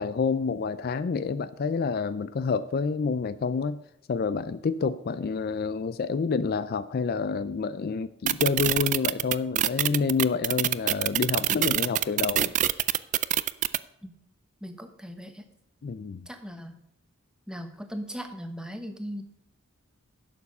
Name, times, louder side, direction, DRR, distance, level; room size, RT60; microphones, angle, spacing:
voice 1, 0.0-3.8 4.1-12.5 15.8-16.3, left 5 dB, 45° left, 14 dB, 0.4 m, -28 dB
sound 1, 8.3-13.8, right 12 dB, 35° right, 0.3 m, -24 dB
voice 2, 14.6-15.5 16.3-16.8 17.5-19.2, equal, 5° right, 6 dB, 1.1 m, -38 dB
11.5 x 7.1 x 5.4 m, 0.81 s
head